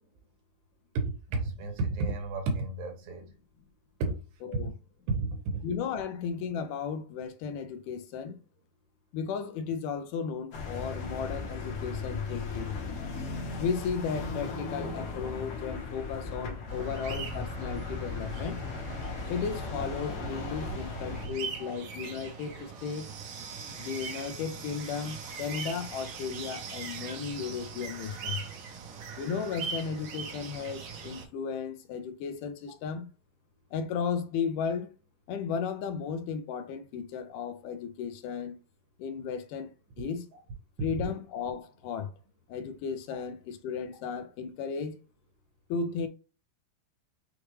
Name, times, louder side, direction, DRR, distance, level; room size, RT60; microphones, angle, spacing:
voice 1, 0.9-3.3 4.0-4.2 4.5-4.6 5.1-5.6 21.6-21.7, right 3 dB, 85° right, 2.8 m, -31 dB
voice 2, 5.6-8.4 9.1-12.8 13.6-18.6 19.3-23.1 23.8-28.4 29.2-33.1 33.7-34.9 35.3-38.6 39.0-39.7 40.0-40.3 40.8-42.1 42.5-45.0 45.7-46.1, left 6 dB, 80° left, 2.1 m, -35 dB
sound 1, 10.5-21.3, left 4 dB, 60° left, 1.8 m, -37 dB
sound 2, 16.7-31.3, right 6 dB, 70° right, 2.3 m, -41 dB
6.5 x 2.4 x 3.2 m
omnidirectional pair, 4.0 m